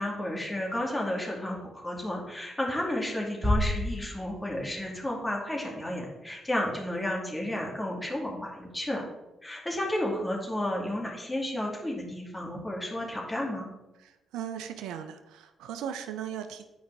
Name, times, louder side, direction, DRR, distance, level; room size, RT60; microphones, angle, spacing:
voice 1, 0.0-9.1 9.4-13.7, left 1 dB, 15° left, -1 dB, 2.3 m, -32 dB
sound 1, 3.4-5.4, left 1 dB, 35° right, 1.8 m, -30 dB
voice 2, 14.0-16.7, right 9 dB, 75° right, 9 dB, 0.4 m, -38 dB
9.4 x 5.0 x 3.4 m, 1.0 s
hypercardioid pair, 45°, 0 cm